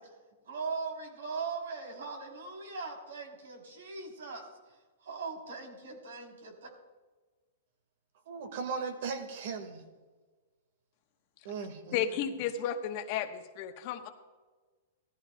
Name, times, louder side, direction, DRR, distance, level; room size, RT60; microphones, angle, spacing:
voice 1, 0.4-6.7, right 4 dB, 85° right, 2 dB, 3.2 m, -40 dB
voice 2, 8.3-9.8 11.4-12.0, right 5 dB, 65° right, 7 dB, 1.7 m, -37 dB
voice 3, 11.9-14.1, left 9 dB, 50° left, 7 dB, 1.0 m, -33 dB
17.0 x 13.5 x 2.2 m, 1.3 s
hypercardioid pair, 130°, 0 cm